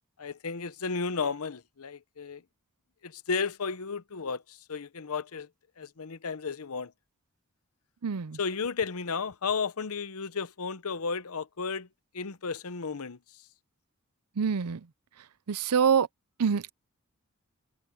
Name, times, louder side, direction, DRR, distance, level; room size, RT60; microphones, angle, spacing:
voice 1, 0.2-2.4 3.0-5.5 5.8-6.9 8.4-11.9 12.1-13.2, left 5 dB, 75° left, 0.8 m, -33 dB
voice 2, 8.0-8.4 14.4-14.9 15.5-16.1 16.4-16.7, right 7 dB, 90° right, 0.6 m, -25 dB
head